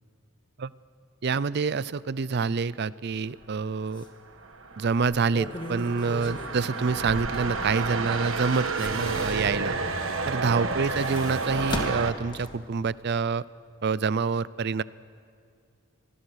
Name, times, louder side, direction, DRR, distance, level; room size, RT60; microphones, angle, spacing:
voice 1, 1.2-4.0 4.8-9.8 10.3-13.4 13.8-14.8, right 5 dB, 50° right, 19 dB, 0.5 m, -27 dB
sound 1, 3.4-3.5 3.9-4.1 5.0-8.1 8.4-9.8 10.6-12.7 13.1-13.2, left 1 dB, 20° left, 1.8 m, -38 dB
sound 2, 4.2-12.1, right 3 dB, 70° right, 1.4 m, -31 dB
25.0 x 20.0 x 6.4 m, 2.4 s
head